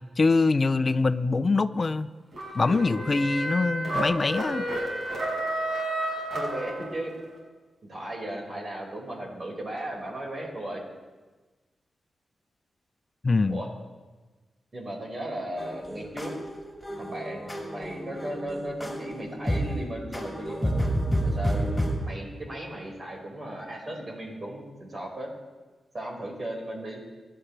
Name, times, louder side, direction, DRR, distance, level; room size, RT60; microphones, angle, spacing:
voice 1, 0.2-2.1 2.5-4.6 13.2-13.6, left 3 dB, 40° left, 12 dB, 0.6 m, -24 dB
sound 1, 2.3-7.2, right 1 dB, 65° right, 6.0 m, -31 dB
voice 2, 6.2-7.2 7.9-10.8 13.5-13.7 14.7-16.3 17.0-21.0 21.2-25.3 25.9-27.0, right 1 dB, 45° right, -1 dB, 5.3 m, -36 dB
sound 2, 15.6-21.9, equal, 10° left, 5.6 m, -30 dB
24.5 x 11.5 x 3.4 m, 1.3 s
cardioid pair, 70°, 0 cm